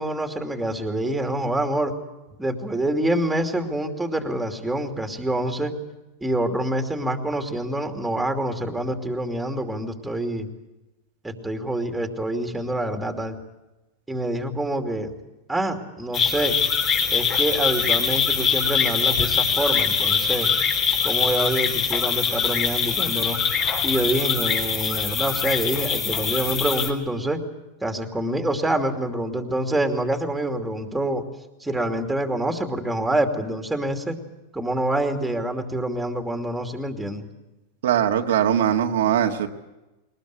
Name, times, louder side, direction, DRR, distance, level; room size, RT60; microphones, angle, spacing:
voice 1, 0.0-1.9 2.4-5.8 6.2-10.5 11.2-13.4 14.1-15.1 15.5-16.6 17.1-20.5 21.0-23.4 23.8-27.4 27.8-31.2 31.6-34.2 34.5-37.3, right 1 dB, 5° right, 5 dB, 2.7 m, -26 dB
sound 1, 16.1-26.9, left 6 dB, 35° left, 4.0 m, -23 dB
voice 2, 37.8-39.5, right 9 dB, 80° right, 3 dB, 1.9 m, -21 dB
21.5 x 20.0 x 8.2 m, 1.0 s
supercardioid pair, 135°, 0 cm